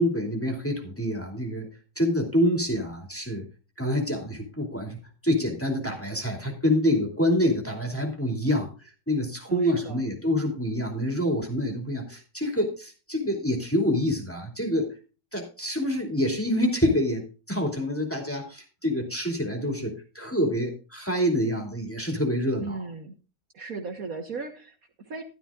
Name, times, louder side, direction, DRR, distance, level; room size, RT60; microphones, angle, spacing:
voice 1, 0.0-1.7 2.0-3.5 3.8-8.7 9.1-14.9 15.3-22.8, equal, 5° left, 1 dB, 2.5 m, -26 dB
voice 2, 9.5-10.0 22.6-23.1 23.5-25.2, right 4 dB, 55° right, 4 dB, 1.7 m, -37 dB
12.5 x 12.5 x 2.4 m, 0.33 s
omnidirectional pair, 1.9 m